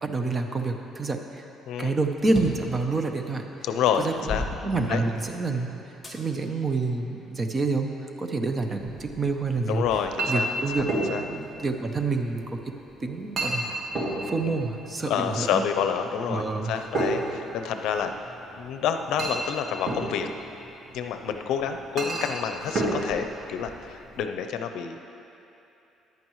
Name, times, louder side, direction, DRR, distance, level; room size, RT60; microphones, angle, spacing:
voice 1, 0.0-1.5 1.8-3.4 4.0-4.4 4.6-5.8 6.1-9.8 10.3-12.6 13.0-13.7 14.2-15.6 16.3-16.7, right 3 dB, 25° right, 5 dB, 0.7 m, -28 dB
voice 2, 1.7-2.0 3.6-4.4 4.9-5.0 9.7-10.5 10.8-10.9 11.1-11.2 14.4-14.6 15.1-20.3 20.9-25.0, left 7 dB, 75° left, 6 dB, 0.6 m, -28 dB
sound 1, 2.2-2.7 3.4-3.5 3.9-5.4 6.0-6.2 6.9-8.0, left 2 dB, 5° left, 1.4 m, -35 dB
Chink clink, 8.7-24.3, right 1 dB, 45° right, 1.6 m, -33 dB
14.5 x 10.5 x 3.1 m, 2.9 s
cardioid pair, 135°, 0 cm